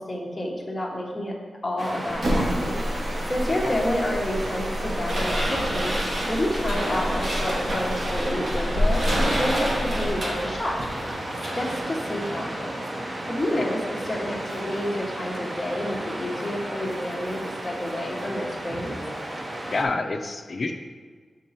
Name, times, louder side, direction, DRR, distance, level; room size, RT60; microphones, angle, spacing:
voice 1, 0.0-1.3 1.6-9.0 9.4-10.8 11.5-12.8 13.3-19.0, left 1 dB, 15° left, -3 dB, 0.9 m, -29 dB
Waves surf, 1.8-19.9, right 1 dB, 30° right, 0.7 m, -34 dB
sound 1, 2.1-10.2, equal, 80° right, 1.5 m, -29 dB
sound 2, 5.1-12.4, right 1 dB, 45° right, 1.0 m, -30 dB
voice 2, 19.7-20.7, left 3 dB, 40° left, 4 dB, 0.4 m, -27 dB
6.3 x 3.8 x 4.1 m, 1.5 s
wide cardioid pair, 160°, 0 cm